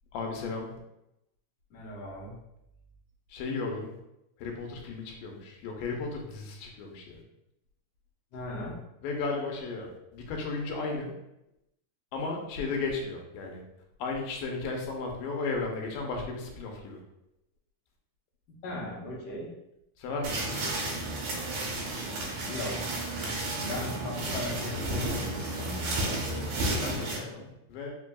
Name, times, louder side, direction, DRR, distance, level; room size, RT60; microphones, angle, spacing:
voice 1, 0.1-0.7 3.3-3.9 4.4-7.2 9.0-11.1 12.1-13.6 14.0-17.0 20.0-21.1 26.0-27.9, left 3 dB, 90° left, 1 dB, 2.4 m, -35 dB
voice 2, 1.7-2.4 8.3-8.7 18.6-19.5 22.5-23.0 23.6-25.9, left 1 dB, 75° left, -5 dB, 1.4 m, -38 dB
sound 1, 20.2-27.2, right 1 dB, 75° right, 2.1 m, -32 dB
5.3 x 2.6 x 2.3 m, 0.86 s
omnidirectional pair, 3.8 m